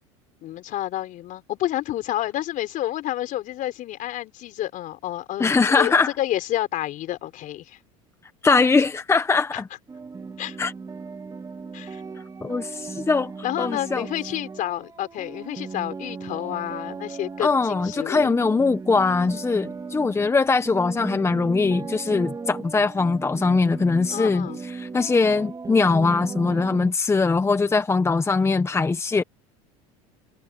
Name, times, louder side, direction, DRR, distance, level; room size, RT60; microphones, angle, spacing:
voice 1, 0.4-7.8 9.5-9.6 10.4-10.6 11.7-12.0 13.4-18.3 24.1-24.6, left 14 dB, 50° left, 4.7 m, -29 dB
voice 2, 5.4-6.1 8.4-9.6 10.6-10.7 12.4-13.3 13.6-14.0 17.4-29.2, left 4 dB, 15° left, 1.3 m, -21 dB
sound 1, 9.9-26.9, right 4 dB, 20° right, 2.7 m, -37 dB
supercardioid pair, 100°, 17 cm